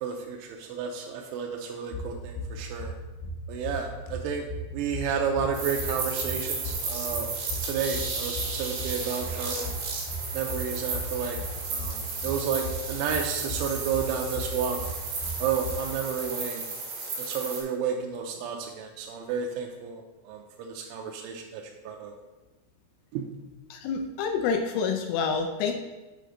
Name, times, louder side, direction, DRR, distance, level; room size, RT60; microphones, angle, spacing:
voice 1, 0.0-2.9 3.5-4.4 4.7-7.3 7.6-9.7 10.3-11.4 11.7-14.8 15.4-16.6 17.2-22.1 23.1-23.2, right 6 dB, 85° right, 1 dB, 2.9 m, -31 dB
sound 1, 1.9-15.8, left 1 dB, 65° left, 3.1 m, -37 dB
sound 2, 5.5-17.6, right 4 dB, 60° right, 3.1 m, -34 dB
voice 2, 23.7-25.7, left 5 dB, 85° left, 4 dB, 3.0 m, -27 dB
7.6 x 5.1 x 3.8 m, 1.1 s
omnidirectional pair, 5.8 m